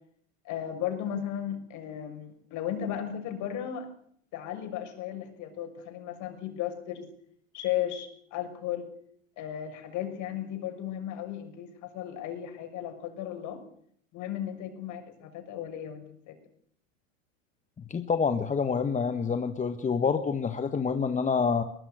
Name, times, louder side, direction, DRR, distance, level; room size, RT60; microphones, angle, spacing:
voice 1, 0.4-3.9 4.3-7.1 7.5-8.9 9.4-13.6 14.1-16.4, left 10 dB, 50° left, 7 dB, 6.5 m, -35 dB
voice 2, 17.9-21.6, left 5 dB, 20° left, 8 dB, 1.6 m, -27 dB
22.0 x 21.0 x 6.5 m, 0.64 s
hypercardioid pair, 105°, 38 cm